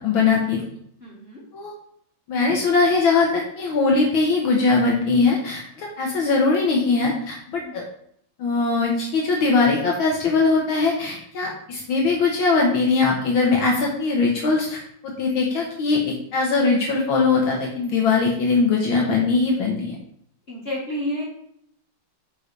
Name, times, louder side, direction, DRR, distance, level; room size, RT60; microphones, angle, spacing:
voice 1, 0.0-0.6 1.5-1.7 2.3-7.8 8.4-14.8 15.2-20.0, left 4 dB, 70° left, -1 dB, 1.9 m, -21 dB
voice 2, 1.0-1.4 7.6-7.8 20.5-21.3, left 1 dB, 30° left, -5 dB, 1.5 m, -30 dB
9.3 x 5.5 x 3.3 m, 0.68 s
omnidirectional pair, 2.4 m